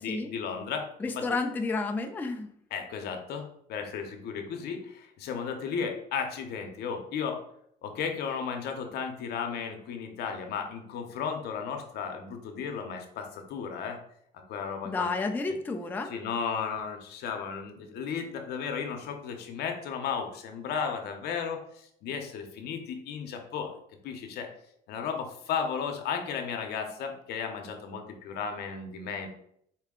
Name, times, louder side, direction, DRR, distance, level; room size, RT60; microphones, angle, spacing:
voice 1, 0.0-0.8 2.7-7.4 7.8-14.0 14.5-15.1 16.1-23.7 24.0-24.5 24.9-29.3, left 6 dB, 70° left, 4 dB, 0.7 m, -34 dB
voice 2, 1.0-2.5 14.8-16.1, left 3 dB, 10° left, 4 dB, 0.3 m, -31 dB
4.5 x 2.2 x 3.6 m, 0.69 s
cardioid pair, 110°, 17 cm